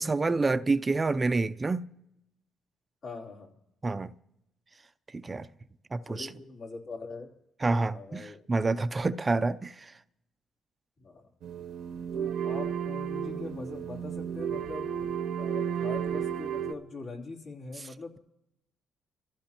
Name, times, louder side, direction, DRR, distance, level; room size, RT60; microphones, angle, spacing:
voice 1, 0.0-1.8 3.8-4.1 5.1-5.5 5.9-6.3 7.6-9.9, right 3 dB, 25° right, 0.5 m, -28 dB
voice 2, 3.0-3.5 6.0-7.3 7.9-8.4 11.0-11.3 12.1-14.9 15.4-18.2, left 3 dB, 65° left, 3.2 m, -42 dB
sound 1, 11.4-16.7, right 8 dB, 80° right, 0.9 m, -33 dB
26.5 x 15.5 x 2.9 m
cardioid pair, 90°, 0 cm